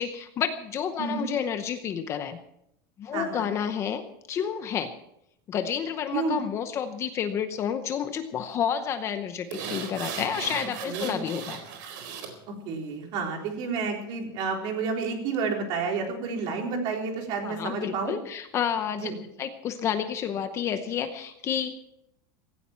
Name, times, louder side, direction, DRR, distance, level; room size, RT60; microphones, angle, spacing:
voice 1, 0.0-2.4 3.0-4.0 4.3-4.9 5.5-11.6 17.4-19.1 19.4-21.8, left 8 dB, 25° left, 9 dB, 0.8 m, -30 dB
voice 2, 1.0-1.3 3.1-3.5 6.1-6.4 10.9-11.2 12.6-18.2 19.0-19.2, right 4 dB, 40° right, 1 dB, 3.9 m, -30 dB
sound 1, 9.5-12.3 12.7-12.8, right 6 dB, 60° right, 4.1 m, -36 dB
17.0 x 16.5 x 4.5 m, 0.77 s
supercardioid pair, 175°, 12 cm